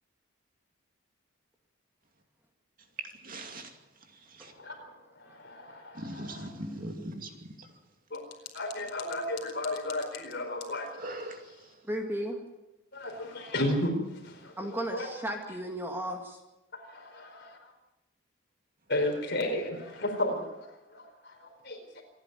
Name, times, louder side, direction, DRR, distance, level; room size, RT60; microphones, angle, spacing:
voice 1, 3.2-3.7 4.4-4.5 6.0-7.3 11.0-11.4, right 1 dB, 40° right, 4 dB, 2.5 m, -39 dB
voice 2, 4.4-6.5 8.1-8.2 8.5-10.9 11.2-11.4 12.9-15.1 16.7-17.7 18.9-22.0, left 1 dB, 50° left, 3 dB, 4.6 m, -34 dB
voice 3, 11.8-12.4 14.6-16.4, right 1 dB, 10° right, 3 dB, 2.1 m, -34 dB
27.0 x 10.5 x 9.4 m, 0.98 s
head